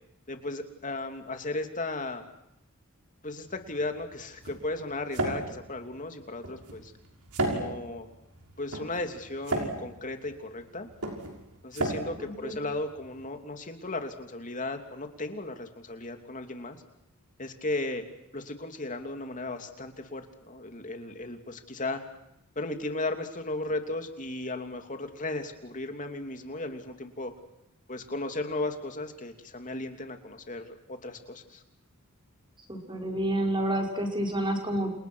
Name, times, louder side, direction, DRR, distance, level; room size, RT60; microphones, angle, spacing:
voice 1, 0.3-2.3 3.2-6.9 7.4-8.1 8.6-10.9 11.6-16.8 17.4-18.0 18.3-22.0 22.5-27.3 27.9-31.6, left 2 dB, 35° left, 6 dB, 2.9 m, -35 dB
sound 1, 3.5-13.3, right 2 dB, 80° right, 6.2 m, -35 dB
voice 2, 12.2-12.5 32.7-34.9, right 1 dB, 20° right, 2 dB, 5.4 m, -29 dB
30.0 x 28.5 x 6.4 m, 0.81 s
head